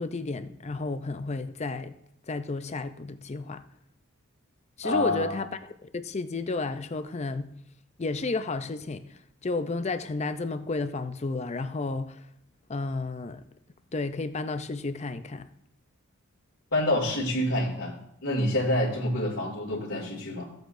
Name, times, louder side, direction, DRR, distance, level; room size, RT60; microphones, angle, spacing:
voice 1, 0.0-1.9 2.3-3.6 4.8-7.5 8.0-9.0 9.4-12.2 12.7-13.4 13.9-15.5, left 3 dB, 30° left, 0.5 m, -32 dB
voice 2, 4.8-5.3 16.7-17.9 18.2-20.4, left 1 dB, 80° left, 2.6 m, -27 dB
15.0 x 7.9 x 2.6 m
head